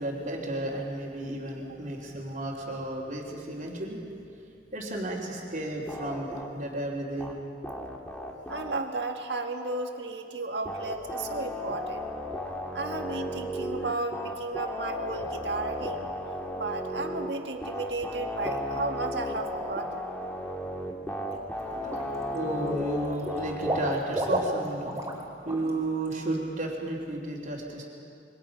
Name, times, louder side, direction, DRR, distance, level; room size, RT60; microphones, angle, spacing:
voice 1, 0.0-4.1 4.7-7.3 21.7-24.9 25.4-27.8, right 1 dB, 45° right, -9 dB, 3.1 m, -33 dB
sound 1, 5.9-6.5 7.2-7.3 7.6-8.8 10.7-17.3 17.6-23.9, left 1 dB, 10° left, 2.0 m, -35 dB
voice 2, 8.5-12.1 12.7-16.1 16.5-20.1, right 3 dB, 75° right, 4 dB, 1.9 m, -34 dB
Water / Liquid, 21.0-21.3 21.7-22.4 22.7-25.2 25.5-25.7 26.1-26.2, equal, 20° right, 3.1 m, -33 dB
27.5 x 23.5 x 5.9 m, 2.6 s
head